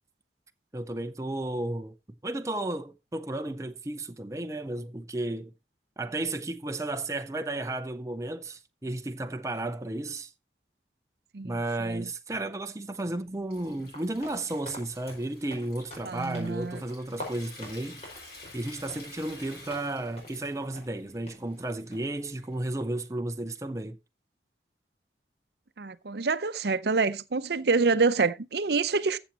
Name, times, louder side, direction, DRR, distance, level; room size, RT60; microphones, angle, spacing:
voice 1, 0.7-2.0 2.2-5.5 6.0-10.3 11.4-18.0 18.5-24.0, right 2 dB, 15° right, 0.5 m, -33 dB
voice 2, 11.3-12.1 16.0-16.8 25.8-29.2, right 4 dB, 65° right, 0.6 m, -27 dB
Water tap faucet / Sink (filling or washing) / Trickle dribble, 13.0-23.0, left 2 dB, 60° left, 5.6 m, -51 dB
sound 1, 13.9-19.9 20.2-20.4 20.7-20.9 21.3-21.4 21.9-22.2, left 1 dB, 35° left, 4.8 m, -46 dB
14.5 x 7.1 x 2.9 m
head